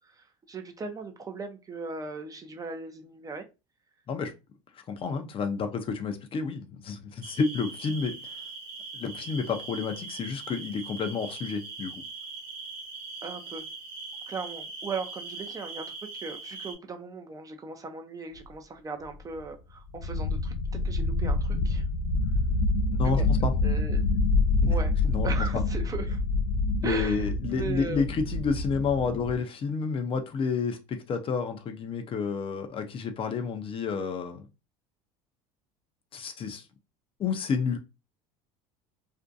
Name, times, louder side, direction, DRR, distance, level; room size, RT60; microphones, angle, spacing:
voice 1, 0.0-3.4 13.2-13.6 14.3-15.9 16.1-20.5 20.8-21.8 23.0-23.3 23.6-24.0 24.7-24.9 25.2-26.2 26.8-28.1, right 4 dB, 20° right, 0.4 m, -38 dB
voice 2, 4.9-8.2 8.9-12.0 22.9-23.5 24.6-24.7 25.0-25.4 26.8-34.5 36.1-36.6 37.2-37.8, left 5 dB, 35° left, 0.5 m, -30 dB
sound 1, 7.2-16.8, right 4 dB, 65° right, 0.9 m, -41 dB
sound 2, 19.1-19.2 19.4-19.5 19.9-29.4, left 3 dB, 90° left, 0.5 m, -27 dB
2.5 x 2.2 x 2.5 m
supercardioid pair, 100°, 16 cm